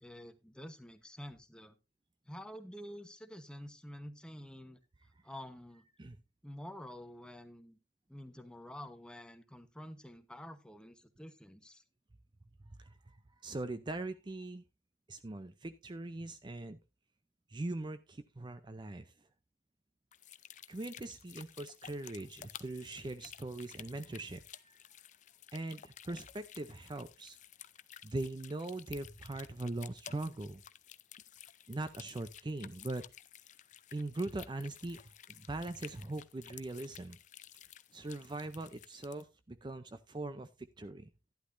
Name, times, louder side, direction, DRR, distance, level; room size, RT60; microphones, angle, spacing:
voice 1, 0.0-1.8 2.2-4.8 5.2-5.9 6.4-7.8 8.1-11.8, equal, 5° left, 9 dB, 0.9 m, -49 dB
voice 2, 12.8-13.2 13.4-14.6 15.1-16.8 17.5-19.1 20.7-24.8 25.5-27.4 28.0-30.6 31.7-33.1 33.9-35.0 35.3-37.2 37.9-40.5 40.8-41.1, right 2 dB, 25° right, 11 dB, 0.5 m, -41 dB
sound 1, 20.1-39.2, left 10 dB, 45° left, 0.5 m, -54 dB
11.5 x 11.5 x 2.6 m, 0.24 s
head